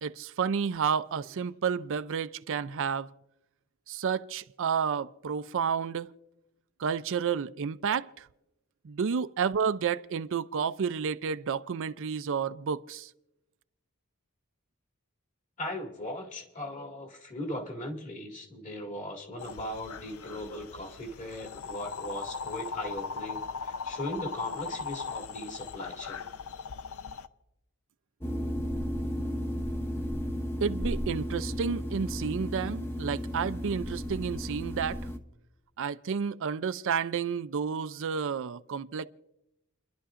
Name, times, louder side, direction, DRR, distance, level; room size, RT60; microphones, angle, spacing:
voice 1, 0.0-3.1 3.9-6.1 6.8-8.3 8.8-13.1 30.6-35.0 35.8-39.1, right 6 dB, 60° right, 0.4 m, -31 dB
voice 2, 15.6-26.3, left 1 dB, 35° left, 2.1 m, -38 dB
sound 1, 19.4-27.3, left 5 dB, 70° left, 0.6 m, -39 dB
sound 2, 28.2-35.2, equal, 10° left, 0.8 m, -34 dB
30.0 x 11.5 x 2.5 m
head